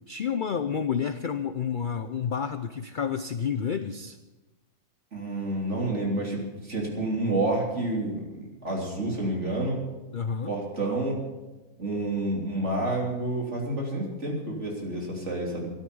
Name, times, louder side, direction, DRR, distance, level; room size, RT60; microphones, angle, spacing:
voice 1, 0.1-4.2 10.1-10.5, left 7 dB, 60° left, 10 dB, 0.5 m, -30 dB
voice 2, 5.1-9.8 10.5-11.2 11.8-15.7, right 2 dB, 50° right, -1 dB, 3.7 m, -29 dB
13.5 x 12.0 x 6.9 m, 1.1 s
omnidirectional pair, 1.6 m